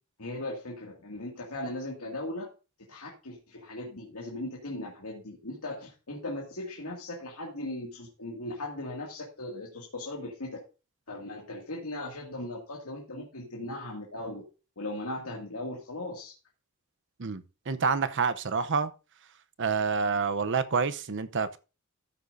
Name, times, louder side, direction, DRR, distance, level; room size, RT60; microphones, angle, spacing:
voice 1, 0.2-2.5 2.9-10.6 11.1-14.4 14.8-16.3, left 1 dB, 90° left, 2.2 m, -38 dB
voice 2, 17.2-18.9 19.6-21.6, right 5 dB, 55° right, 0.7 m, -28 dB
13.5 x 8.7 x 2.6 m
head